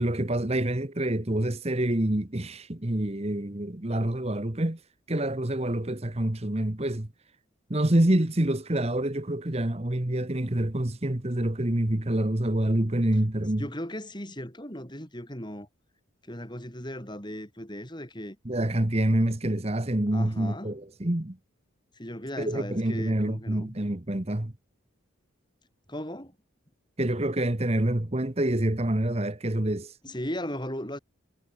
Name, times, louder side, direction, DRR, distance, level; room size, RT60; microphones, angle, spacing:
voice 1, 0.0-4.8 5.1-7.1 7.7-13.7 18.4-21.4 22.4-24.5 27.0-30.0, right 1 dB, 30° right, 1.3 m, -27 dB
voice 2, 13.6-15.7 16.2-18.4 20.1-20.7 21.9-23.8 25.9-26.4 30.0-31.0, equal, 20° left, 7.8 m, -37 dB
head